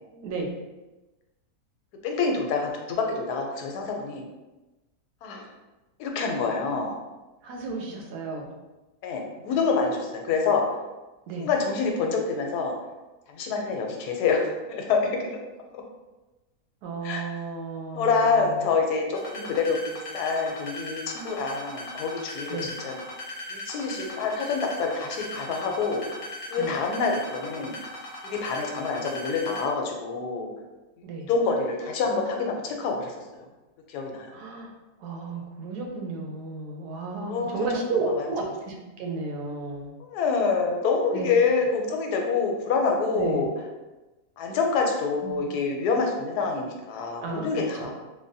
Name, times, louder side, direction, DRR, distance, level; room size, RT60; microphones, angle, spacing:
voice 1, 0.1-0.5 7.4-8.5 9.5-9.6 11.3-11.5 16.8-18.4 22.5-22.7 26.6-26.7 31.0-31.3 34.3-34.7 35.0-39.9 41.1-41.3 43.1-43.5 45.2-45.4 47.2-47.9, right 3 dB, 90° right, 1 dB, 1.1 m, -33 dB
voice 2, 2.0-4.3 5.2-5.5 6.0-7.0 9.0-10.6 11.4-12.7 13.3-15.0 15.7-15.8 17.0-17.2 17.9-22.6 22.8-22.9 23.5-26.0 26.5-27.7 28.2-30.5 31.3-33.1 33.9-34.3 37.2-37.6 38.2-38.3 40.0-43.5 44.4-47.9, left 4 dB, 90° left, 2 dB, 1.1 m, -26 dB
sound 1, 19.1-29.6, left 2 dB, 50° left, 0.7 m, -38 dB
3.3 x 2.1 x 2.6 m, 1.1 s
omnidirectional pair, 1.6 m